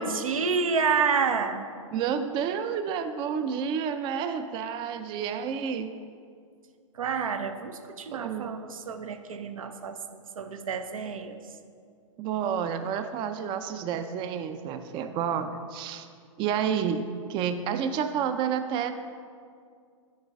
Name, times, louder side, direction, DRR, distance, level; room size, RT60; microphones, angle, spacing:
voice 1, 0.0-1.6 7.0-10.0 10.4-11.4, right 5 dB, 80° right, 8 dB, 0.7 m, -29 dB
voice 2, 1.9-6.0 8.1-8.6 12.2-16.1 16.4-18.9, right 7 dB, 30° right, 9 dB, 0.4 m, -30 dB
9.4 x 4.5 x 4.9 m, 2.2 s
hypercardioid pair, 115°, 17 cm